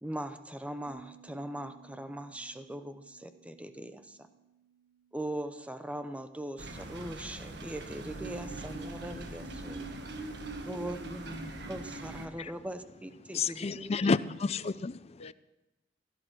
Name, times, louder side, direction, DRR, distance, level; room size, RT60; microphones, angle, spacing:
voice 1, 0.0-4.3 5.1-9.8 10.6-13.9, right 1 dB, 5° right, 0.7 m, -40 dB
Bass guitar, 0.9-7.1, right 6 dB, 40° right, 1.8 m, -60 dB
sound 1, 6.6-12.3, right 2 dB, 60° right, 1.4 m, -42 dB
voice 2, 10.3-11.1 13.4-13.8 15.2-15.3, left 3 dB, 65° left, 0.8 m, -55 dB
voice 3, 13.3-15.3, left 4 dB, 35° left, 0.4 m, -31 dB
16.5 x 11.5 x 6.2 m
head